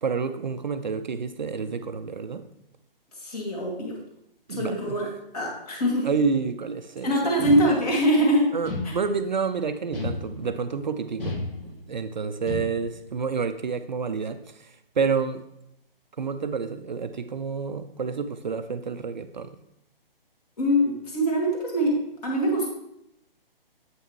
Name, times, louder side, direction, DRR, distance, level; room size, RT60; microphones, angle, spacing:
voice 1, 0.0-2.4 4.5-4.9 6.0-7.3 8.5-15.4 16.2-19.6, right 5 dB, 50° right, 10 dB, 0.4 m, -29 dB
voice 2, 3.2-4.0 4.5-5.1 5.3-6.1 7.0-8.5 8.8-8.9 20.6-22.7, equal, 40° left, -1 dB, 2.0 m, -23 dB
sound 1, 7.4-8.2 8.6-9.4 9.9-10.7 11.2-12.0 12.5-13.1, left 2 dB, 75° left, 1.5 m, -33 dB
7.8 x 5.4 x 3.1 m, 0.81 s
figure-of-eight pair, 135°, 29 cm